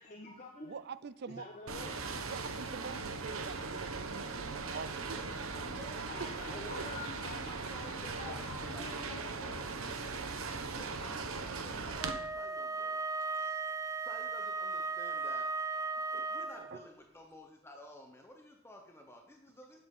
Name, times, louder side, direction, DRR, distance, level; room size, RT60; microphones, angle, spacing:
voice 1, 0.0-0.8 1.3-2.1 5.7-9.2, left 2 dB, 35° left, 0 dB, 1.2 m, -47 dB
voice 2, 0.6-1.5 2.2-5.2 5.7-6.3 10.5-10.7 16.1-16.3 16.7-16.8, right 5 dB, 50° right, 16 dB, 0.5 m, -45 dB
sound 1, 1.7-12.1, right 4 dB, 85° right, 1.1 m, -39 dB
voice 3, 5.1-6.2 6.5-6.8 7.7-8.4 8.7-10.0 10.7-13.0 14.0-15.5 16.3-19.9, left 1 dB, 10° left, 2 dB, 1.0 m, -53 dB
Wind instrument woodwind instrument, 12.0-16.9, right 4 dB, 15° right, 0.7 m, -36 dB
8.6 x 7.6 x 5.5 m, 0.85 s
head